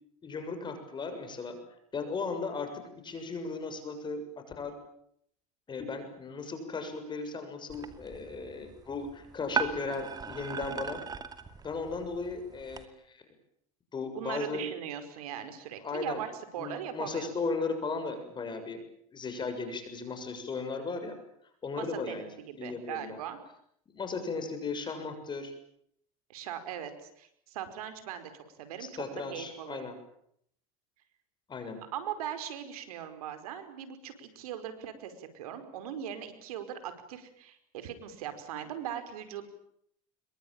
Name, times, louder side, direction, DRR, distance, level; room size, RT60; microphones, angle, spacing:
voice 1, 0.2-1.6 1.9-4.2 4.6-4.7 5.7-11.0 11.6-13.2 13.9-14.6 15.8-16.2 16.6-18.8 19.1-21.2 21.6-22.3 22.6-23.2 23.9-25.5 28.8-29.9 31.5-31.8, left 4 dB, 25° left, 7 dB, 6.9 m, -36 dB
sound 1, 7.7-12.8, right 6 dB, 20° right, 2.5 m, -38 dB
voice 2, 14.1-17.3 21.8-23.4 26.3-29.0 29.3-29.9 31.9-39.5, right 9 dB, 85° right, 10 dB, 5.1 m, -40 dB
26.5 x 23.0 x 8.9 m, 0.71 s
supercardioid pair, 115°, 18 cm